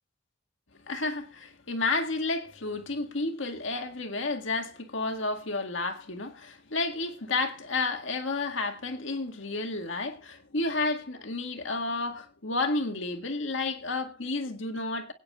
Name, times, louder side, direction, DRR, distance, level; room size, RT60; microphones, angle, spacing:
voice 1, 0.9-15.1, left 3 dB, 70° left, 1.8 m, -31 dB
23.0 x 9.4 x 2.4 m
head